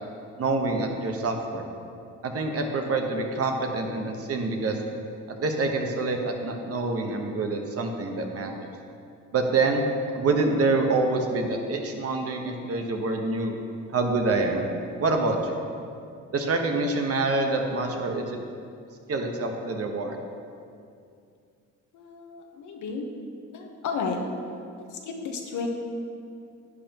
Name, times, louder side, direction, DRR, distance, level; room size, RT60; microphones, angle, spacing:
voice 1, 0.4-1.7 2.2-4.8 5.4-8.7 9.3-9.9 10.1-13.5 13.9-14.7 15.0-15.6 16.3-18.4 19.1-20.2, right 3 dB, 50° right, 3 dB, 1.2 m, -26 dB
voice 2, 21.9-23.1 23.5-24.2 24.8-25.7, left 5 dB, 80° left, 2 dB, 1.3 m, -33 dB
11.0 x 8.8 x 3.0 m, 2.4 s
cardioid pair, 90°, 30 cm